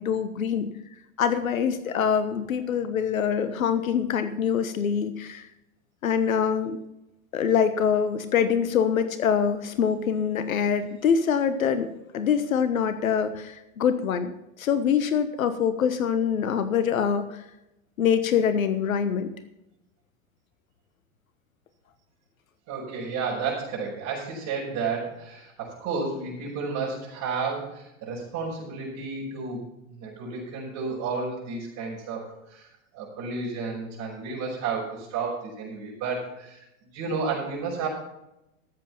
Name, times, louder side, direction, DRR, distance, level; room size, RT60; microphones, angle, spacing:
voice 1, 0.0-0.7 1.2-5.5 6.0-6.8 7.3-11.9 12.1-14.3 14.6-17.4 18.0-19.3, left 7 dB, 80° left, 11 dB, 1.2 m, -24 dB
voice 2, 22.7-32.7 32.9-36.6 36.9-37.9, right 4 dB, 50° right, -6 dB, 5.8 m, -32 dB
14.0 x 7.8 x 5.9 m, 0.87 s
hypercardioid pair, 95°, 40 cm